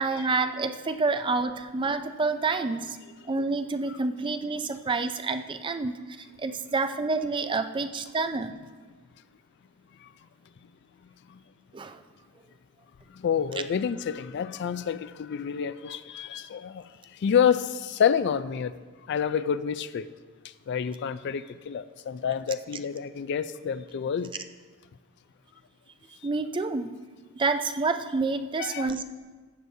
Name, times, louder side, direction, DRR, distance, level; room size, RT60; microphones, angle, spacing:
voice 1, 0.0-3.0 3.3-6.0 6.4-8.5 11.7-12.0 26.2-26.9 27.4-29.0, right 3 dB, 20° right, 9 dB, 0.4 m, -28 dB
voice 2, 13.2-16.8 17.2-18.7 19.1-20.1 20.7-24.3 28.6-28.9, left 7 dB, 50° left, 14 dB, 0.3 m, -28 dB
14.5 x 9.1 x 2.7 m, 1.4 s
head